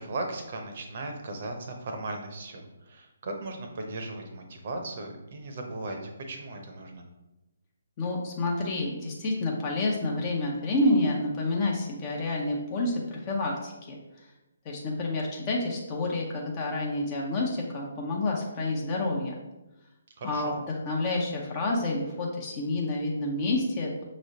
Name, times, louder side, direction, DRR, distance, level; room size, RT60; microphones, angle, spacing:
voice 1, 0.0-7.1 20.2-20.6, right 2 dB, 45° right, 3 dB, 0.8 m, -37 dB
voice 2, 8.0-14.0 14.6-19.3 20.2-24.0, left 2 dB, 30° left, -2 dB, 0.7 m, -29 dB
6.1 x 3.1 x 2.8 m, 0.98 s
figure-of-eight pair, 135°, 0 cm